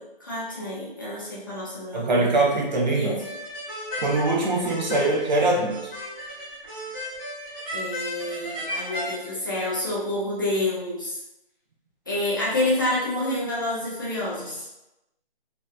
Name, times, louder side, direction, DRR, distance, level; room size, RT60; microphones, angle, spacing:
voice 1, 0.2-2.1 2.9-3.1 4.7-4.8 7.7-11.2 12.1-14.7, left 1 dB, 20° left, -8 dB, 0.5 m, -28 dB
voice 2, 1.9-3.2 4.0-5.9, right 2 dB, 50° right, -1 dB, 0.7 m, -23 dB
sound 1, 3.2-9.1, equal, 15° right, 0.8 m, -34 dB
2.9 x 2.3 x 2.4 m, 0.93 s
figure-of-eight pair, 160°, 29 cm